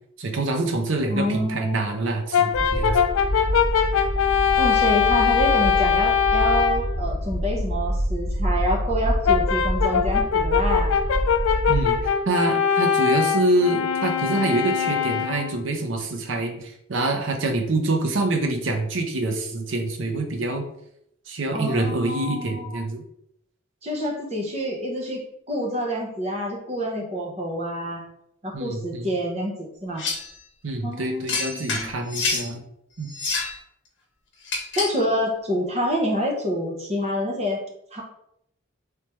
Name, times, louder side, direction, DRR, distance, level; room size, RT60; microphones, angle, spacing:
voice 1, 0.2-3.0 11.7-20.6 21.3-23.0 28.5-29.1 30.6-32.6 33.0-33.1, right 2 dB, 75° right, 4 dB, 0.7 m, -26 dB
voice 2, 1.1-1.9 4.6-10.9 21.5-22.8 23.8-25.2 25.5-28.0 28.4-30.0 30.8-32.0 34.7-37.6 37.9-38.0, equal, 30° right, -1 dB, 0.9 m, -27 dB
Brass instrument, 2.3-6.9 9.2-15.6, left 7 dB, 80° left, 0.3 m, -22 dB
sound 1, 2.5-12.1, equal, 35° left, 0.9 m, -26 dB
sound 2, 30.0-30.3 31.3-32.5 33.1-33.6 34.4-35.0, left 4 dB, 65° left, 0.9 m, -27 dB
3.3 x 3.2 x 3.0 m, 0.75 s
head